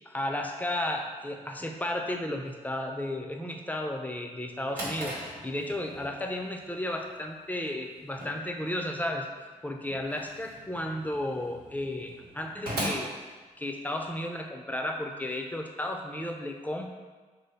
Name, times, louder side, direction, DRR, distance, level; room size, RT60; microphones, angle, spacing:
voice 1, 0.1-9.3 9.6-13.1 13.6-16.9, left 1 dB, 10° left, 3 dB, 0.5 m, -33 dB
Drawer open or close, 4.3-14.1, equal, 85° right, 1.0 m, -41 dB
3.2 x 2.1 x 4.0 m, 1.4 s
supercardioid pair, 45°, 15 cm